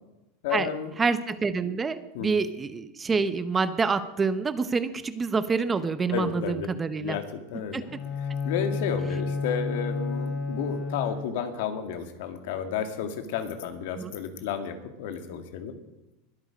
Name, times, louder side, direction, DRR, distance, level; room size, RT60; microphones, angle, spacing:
voice 1, 0.4-0.9 2.1-2.3 6.1-6.7 7.0-7.9 8.2-15.8, left 7 dB, 70° left, 7 dB, 2.1 m, -32 dB
voice 2, 1.0-7.2 7.7-8.0 13.9-14.1, right 4 dB, 15° right, 12 dB, 0.7 m, -27 dB
Bowed string instrument, 7.8-11.6, left 4 dB, 40° left, 2.9 m, -31 dB
21.5 x 8.8 x 5.2 m, 0.96 s
supercardioid pair, 140°, 0 cm